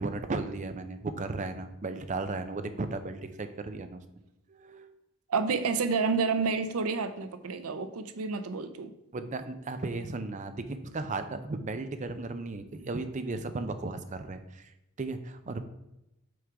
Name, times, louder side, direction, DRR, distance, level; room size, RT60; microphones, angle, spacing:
voice 1, 0.0-4.0 4.5-4.9 9.1-14.7 15.0-15.6, right 3 dB, 35° right, 9 dB, 0.5 m, -35 dB
voice 2, 5.3-8.9, right 4 dB, 90° right, 10 dB, 0.6 m, -29 dB
6.2 x 3.7 x 4.6 m, 0.89 s
head